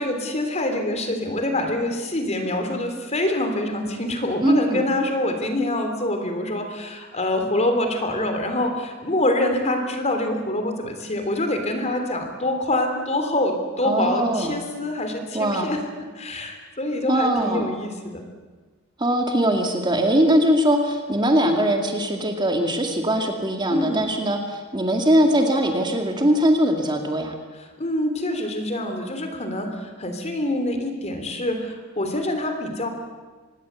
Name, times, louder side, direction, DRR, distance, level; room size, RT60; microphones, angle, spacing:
voice 1, 0.0-15.8 16.2-18.2 23.7-24.1 27.8-32.9, left 1 dB, 30° left, 6 dB, 3.4 m, -25 dB
voice 2, 4.4-4.8 13.8-14.6 15.3-15.7 17.1-17.7 19.0-27.3, right 1 dB, 20° right, 3 dB, 2.3 m, -21 dB
25.5 x 20.0 x 8.2 m, 1.4 s
head